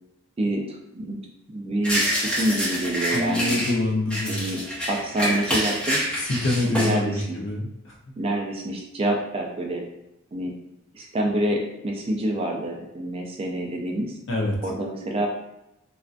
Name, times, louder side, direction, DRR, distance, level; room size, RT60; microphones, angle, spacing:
voice 1, 0.4-1.2 1.5-3.6 4.3-4.6 4.9-6.0 6.7-7.4 8.2-9.8 10.3-10.5 10.9-14.1 14.6-15.3, right 1 dB, 30° right, 1 dB, 0.3 m, -27 dB
sound 1, 1.8-3.7 4.1-7.0, equal, 5° left, 0.6 m, -26 dB
voice 2, 3.1-4.4 6.2-7.9 14.3-14.6, left 2 dB, 60° left, -1 dB, 0.6 m, -25 dB
2.4 x 2.2 x 2.4 m, 0.88 s
head